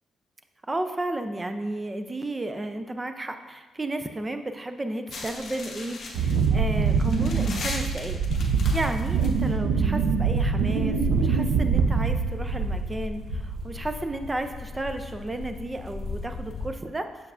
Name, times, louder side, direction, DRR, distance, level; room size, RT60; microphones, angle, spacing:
voice 1, 0.7-8.2 8.4-17.1, right 1 dB, 15° right, 7 dB, 0.3 m, -33 dB
sound 1, 5.1-16.7, left 3 dB, 45° left, 0.9 m, -37 dB
Wind, 6.1-13.0 13.3-13.8, right 5 dB, 85° right, 0.5 m, -24 dB
6.9 x 6.5 x 2.4 m, 1.2 s
cardioid pair, 170°, 0 cm